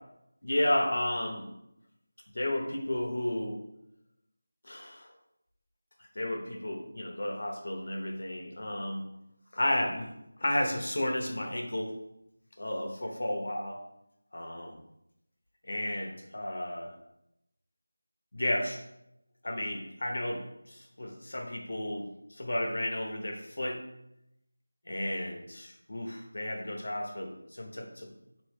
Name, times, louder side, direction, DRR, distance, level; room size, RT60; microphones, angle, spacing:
voice 1, 0.4-1.5 2.3-3.6 4.6-5.1 6.1-9.1 9.5-10.1 10.4-11.9 12.6-13.8 14.3-14.8 15.7-16.9 18.3-18.8 19.4-23.8 24.9-28.1, left 1 dB, 55° left, 2 dB, 0.7 m, -33 dB
4.4 x 3.0 x 3.2 m, 0.83 s
figure-of-eight pair, 180°, 0 cm